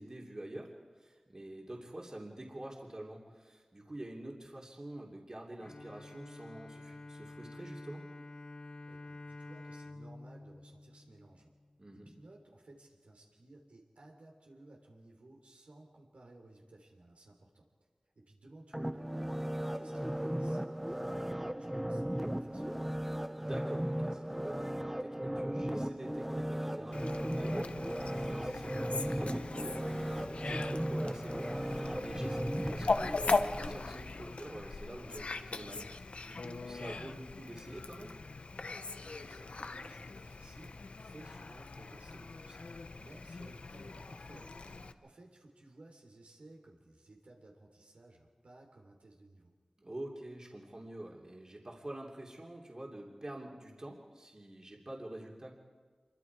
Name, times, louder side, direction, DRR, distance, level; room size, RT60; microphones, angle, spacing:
voice 1, 0.0-8.1 11.8-12.1 23.4-38.1 44.6-44.7 49.8-55.6, right 1 dB, 35° right, -1 dB, 3.0 m, -47 dB
Bowed string instrument, 5.6-11.8, left 2 dB, 45° left, 0.7 m, -49 dB
voice 2, 8.9-11.5 11.9-17.7 18.2-19.4 19.8-22.7 39.0-49.5, right 2 dB, 90° right, 0 dB, 3.5 m, -57 dB
sound 1, 18.7-33.8 34.2-34.3, equal, 10° right, 0.7 m, -36 dB
Fowl, 26.9-44.9, left 3 dB, 80° left, 0.8 m, -39 dB
26.5 x 23.5 x 4.8 m, 1.5 s
wide cardioid pair, 80°, 2 cm